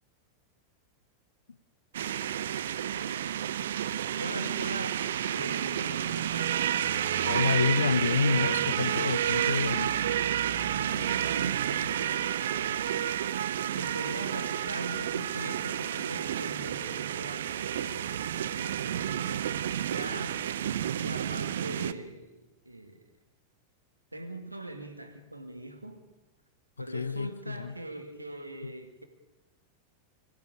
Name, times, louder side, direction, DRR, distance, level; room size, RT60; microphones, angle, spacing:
sound 1, 1.9-21.9, right 10 dB, 60° right, 0.7 m, -30 dB
voice 1, 4.1-6.6 10.5-13.0 13.8-20.4 20.9-23.0 24.1-26.0 26.8-29.0, right 1 dB, 85° right, 2.4 m, -41 dB
voice 2, 7.2-10.0 26.9-27.8 28.6-28.7, left 5 dB, 75° left, 0.6 m, -28 dB
23.0 x 15.0 x 8.7 m
figure-of-eight pair, 90°, 0 cm